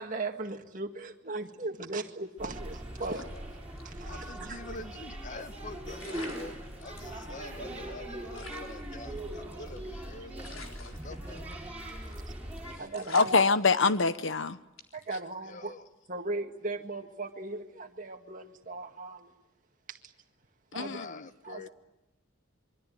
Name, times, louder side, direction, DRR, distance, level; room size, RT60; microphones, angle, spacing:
voice 1, 0.0-3.3 3.8-4.6 12.7-13.4 14.9-15.7 16.1-19.3 19.9-20.0 20.7-21.0 21.4-21.7, right 3 dB, 40° right, 1.9 m, -37 dB
sound 1, 2.4-12.7, right 1 dB, 10° right, 6.9 m, -41 dB
sound 2, 3.0-4.2 4.5-4.6 5.6-5.7 6.0-7.1 7.6-7.7 7.9-8.0 8.4-9.9 10.4-11.7 12.0-12.3 12.6-12.7 12.9-14.3 14.8-15.1, left 4 dB, 85° left, 3.9 m, -48 dB
voice 2, 4.1-11.6 15.5-15.9 20.8-21.7, left 2 dB, 40° left, 1.1 m, -46 dB
voice 3, 13.1-14.6 20.7-21.3, left 4 dB, 65° left, 1.0 m, -25 dB
25.5 x 24.0 x 9.3 m
head